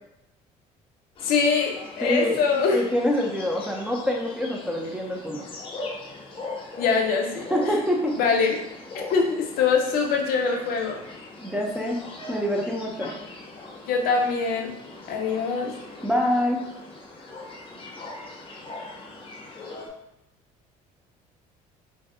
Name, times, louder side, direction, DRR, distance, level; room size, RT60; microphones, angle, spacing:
sound 1, 1.1-19.9, left 2 dB, 35° left, 0.7 m, -41 dB
voice 1, 1.2-2.8 6.8-7.7 8.2-8.6 9.1-11.0 13.9-14.7 15.1-15.8, left 5 dB, 75° left, 2 dB, 0.6 m, -23 dB
voice 2, 2.0-2.4 2.7-5.4 7.5-8.2 11.4-12.0 12.3-13.1 16.0-16.6, equal, 5° right, 0 dB, 0.5 m, -25 dB
2.6 x 2.0 x 3.6 m, 0.87 s
cardioid pair, 115°, 16 cm